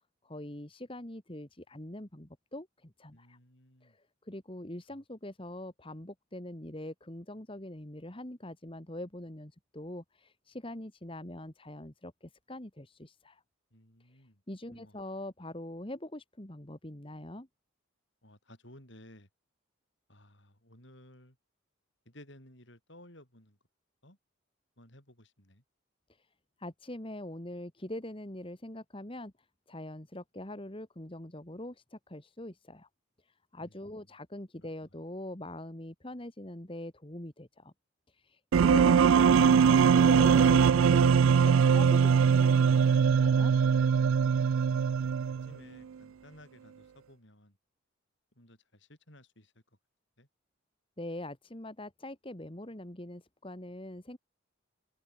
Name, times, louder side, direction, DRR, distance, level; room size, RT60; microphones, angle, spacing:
voice 1, 0.2-3.4 3.8-13.4 14.1-14.2 14.5-17.5 26.2-26.3 26.6-29.3 29.7-32.9 33.2-37.7 38.1-43.5 51.0-54.2, left 1 dB, 25° left, 1.9 m, -43 dB
voice 2, 3.1-4.0 4.9-5.0 13.7-14.4 14.7-15.0 18.2-19.3 20.1-21.4 22.0-23.6 24.0-24.2 24.8-25.6 33.6-34.1 34.6-34.7 44.7-45.0 45.4-47.6 48.3-49.6 50.2-50.3, left 1 dB, 60° left, 7.9 m, -56 dB
sound 1, 38.5-45.5, right 6 dB, 75° right, 0.4 m, -22 dB
head